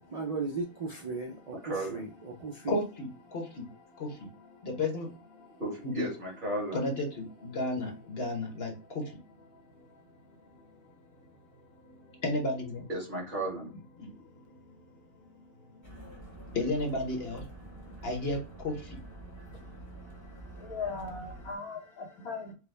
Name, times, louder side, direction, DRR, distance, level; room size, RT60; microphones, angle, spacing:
voice 1, 0.1-1.5 1.9-2.1 2.4-2.8 7.8-7.9, right 3 dB, 75° right, 1 dB, 0.3 m, -35 dB
voice 2, 1.6-2.1 5.6-6.9 12.9-13.7, right 1 dB, 35° right, -2 dB, 1.6 m, -34 dB
voice 3, 4.6-5.1 5.8-6.0 6.7-8.7 12.2-12.8 16.5-17.4 18.0-18.4 18.6-18.7, left 2 dB, 50° left, 1 dB, 1.1 m, -31 dB
voice 4, 13.6-14.3 20.6-22.5, left 4 dB, 85° left, 0 dB, 1.7 m, -40 dB
sound 1, 15.8-21.5, right 2 dB, 15° left, 1.0 m, -47 dB
4.8 x 2.2 x 3.2 m, 0.33 s
omnidirectional pair, 1.5 m